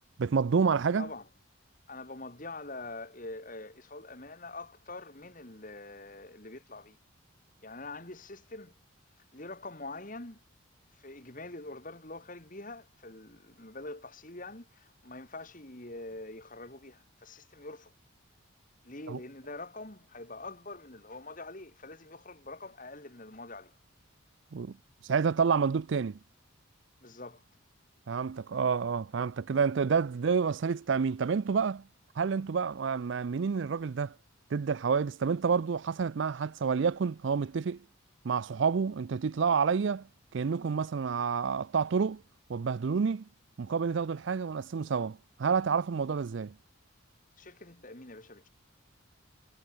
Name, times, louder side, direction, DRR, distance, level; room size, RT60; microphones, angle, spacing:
voice 1, 0.2-1.1 19.1-19.2 24.5-24.7 25.0-26.2 28.1-31.8 32.2-34.1 34.5-37.8 38.2-40.1 40.3-42.2 42.5-43.2 43.6-46.5, right 5 dB, 60° right, 0.4 m, -29 dB
voice 2, 1.0-1.3 1.9-7.0 7.6-8.8 9.3-10.4 10.9-17.9 18.8-23.8 27.0-27.4 47.4-48.5, left 2 dB, 40° left, 2.8 m, -44 dB
head